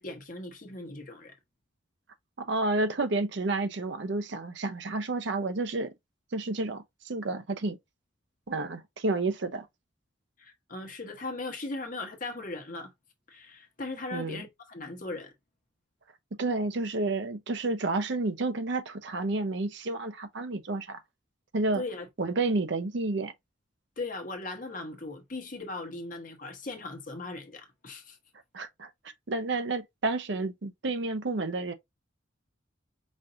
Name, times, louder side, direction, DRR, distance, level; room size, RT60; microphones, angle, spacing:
voice 1, 0.0-1.3 10.4-12.9 13.3-15.3 21.7-22.1 24.0-28.2, left 2 dB, 40° left, 1.0 m, -38 dB
voice 2, 2.4-5.9 6.3-7.8 8.5-9.7 14.1-14.4 16.4-21.0 21.5-21.8 22.2-23.3 28.5-28.9 29.3-31.7, right 2 dB, 60° right, 0.7 m, -30 dB
5.2 x 2.5 x 2.6 m
head